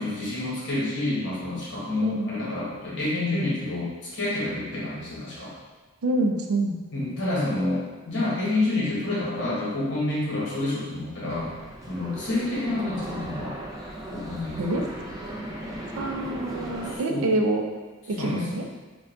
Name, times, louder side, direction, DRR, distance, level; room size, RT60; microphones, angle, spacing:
voice 1, 0.0-5.5 6.9-11.5 11.9-13.6 14.1-14.8 16.8-17.3 18.2-18.6, left 2 dB, 55° left, -8 dB, 1.3 m, -28 dB
voice 2, 6.0-6.8 14.6-14.8 15.9-17.6 18.1-18.6, right 1 dB, 80° right, 3 dB, 0.4 m, -26 dB
sound 1, 11.3-17.0, right 1 dB, 15° right, 0.3 m, -37 dB
5.1 x 2.3 x 2.5 m, 1.3 s
head